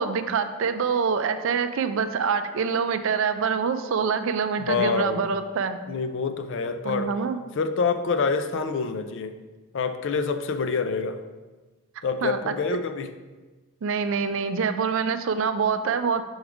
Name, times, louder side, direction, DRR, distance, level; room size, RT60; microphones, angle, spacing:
voice 1, 0.0-5.8 6.8-7.4 12.2-12.5 13.8-16.2, right 6 dB, 60° right, 10 dB, 0.4 m, -25 dB
voice 2, 4.6-5.3 5.9-7.1 7.6-9.4 9.7-11.2 12.0-13.1, left 5 dB, 60° left, 9 dB, 0.4 m, -26 dB
6.3 x 3.5 x 4.7 m, 1.3 s
head